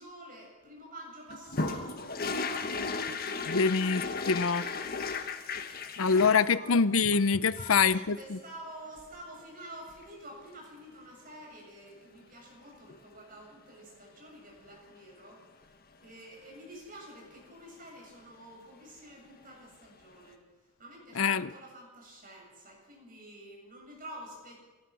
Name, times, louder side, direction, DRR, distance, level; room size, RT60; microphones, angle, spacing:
voice 1, 0.0-2.1 2.7-3.8 4.0-4.1 6.1-6.7 7.5-15.4 16.0-20.4 20.8-24.5, right 1 dB, 40° right, 0 dB, 7.5 m, -49 dB
sound 1, 1.3-6.4 7.0-8.0 10.0-10.1 10.4-10.5 12.7-13.0 18.9-19.0 19.3-19.4, left 4 dB, 45° left, 1.5 m, -35 dB
voice 2, 3.5-4.6 6.0-8.4 21.1-21.5, left 5 dB, 70° left, 15 dB, 0.7 m, -25 dB
29.5 x 14.0 x 6.3 m, 1.3 s
head